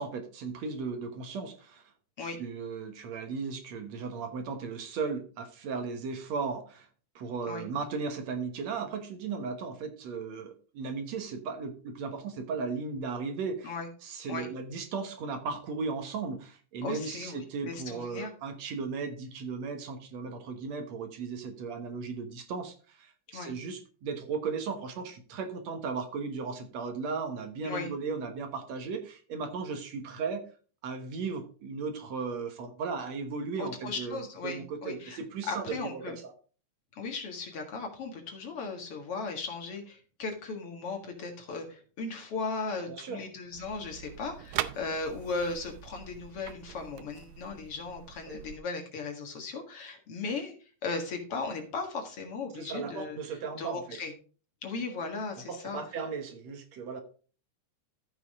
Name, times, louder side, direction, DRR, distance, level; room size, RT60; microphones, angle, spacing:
voice 1, 0.0-1.8 2.2-6.9 7.2-13.8 14.0-30.4 30.8-36.3 42.9-43.2 48.3-48.4 52.6-54.0 55.5-57.0, right 5 dB, 70° right, 7 dB, 2.5 m, -36 dB
voice 2, 16.8-18.3 23.3-23.5 27.6-27.9 33.6-35.2 35.5-36.1 36.9-50.5 50.8-53.2 53.6-54.1 54.6-55.8, left 4 dB, 55° left, 3 dB, 2.6 m, -37 dB
sound 1, 43.5-48.6, right 13 dB, 85° right, 2.1 m, -41 dB
14.0 x 6.0 x 3.6 m, 0.38 s
omnidirectional pair, 3.3 m